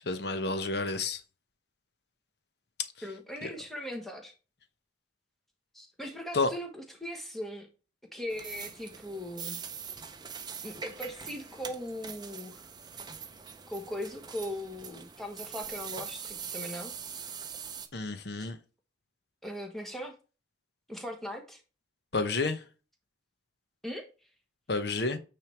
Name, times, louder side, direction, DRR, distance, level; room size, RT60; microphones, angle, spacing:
voice 1, 0.1-1.2 3.4-3.5 6.3-6.5 17.9-18.6 22.1-22.6 24.7-25.2, left 3 dB, 60° left, 0.9 m, -30 dB
voice 2, 3.0-4.3 5.7-7.7 8.1-9.6 10.6-12.7 13.7-16.9 18.4-18.5 19.4-20.1 20.9-21.6 23.8-24.1, equal, ahead, 1.3 m, -39 dB
sound 1, 8.3-17.9, right 7 dB, 20° right, 0.6 m, -43 dB
9.0 x 3.4 x 4.5 m
head